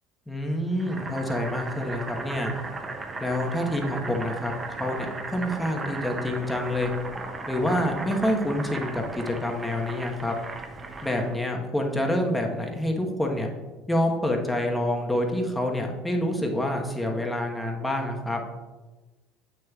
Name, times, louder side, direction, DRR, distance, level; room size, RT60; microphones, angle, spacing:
voice 1, 0.3-2.5 3.2-4.5 4.8-6.9 7.5-10.3 11.0-13.5 13.9-18.4, left 1 dB, 10° left, 1 dB, 1.2 m, -27 dB
Boiling, 0.8-11.4, right 3 dB, 25° right, 0.8 m, -36 dB
8.5 x 6.4 x 2.4 m, 1.2 s
hypercardioid pair, 70°, 0 cm